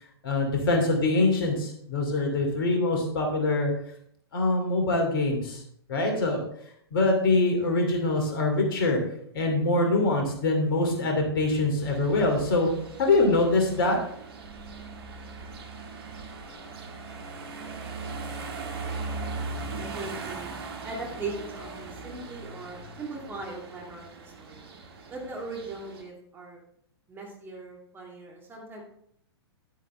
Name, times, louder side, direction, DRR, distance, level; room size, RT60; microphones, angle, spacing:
voice 1, 0.2-3.7 4.3-5.6 5.9-6.4 6.9-9.0 9.3-12.7 13.0-14.0, left 2 dB, 55° left, 2 dB, 2.6 m, -24 dB
sound 1, 11.8-26.0, right 3 dB, 60° right, 1.7 m, -39 dB
voice 2, 19.8-20.5 20.8-24.6 25.1-26.6 27.1-28.8, right 3 dB, 15° right, -1 dB, 2.5 m, -39 dB
10.0 x 9.1 x 3.3 m, 0.68 s
figure-of-eight pair, 110°, 14 cm